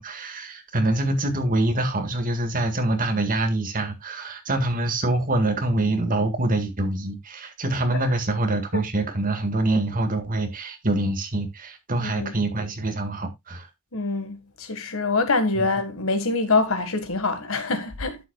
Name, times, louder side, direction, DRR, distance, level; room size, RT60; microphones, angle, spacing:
voice 1, 0.0-13.7 15.6-15.7, right 2 dB, 40° right, 1.9 m, -25 dB
voice 2, 12.0-12.3 13.9-18.3, left 3 dB, 65° left, 1.7 m, -25 dB
11.5 x 8.1 x 2.3 m
head